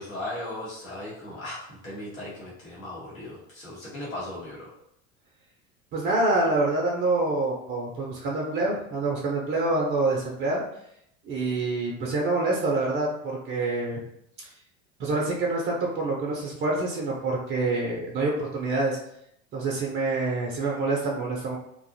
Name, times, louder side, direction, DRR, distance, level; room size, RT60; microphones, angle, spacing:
voice 1, 0.0-4.7, left 1 dB, 75° left, -7 dB, 1.1 m, -37 dB
voice 2, 5.9-10.6 11.2-14.0 15.0-19.0 19.5-21.6, right 2 dB, 25° right, -2 dB, 0.5 m, -26 dB
2.6 x 2.2 x 2.5 m, 0.75 s
figure-of-eight pair, 80°, 41 cm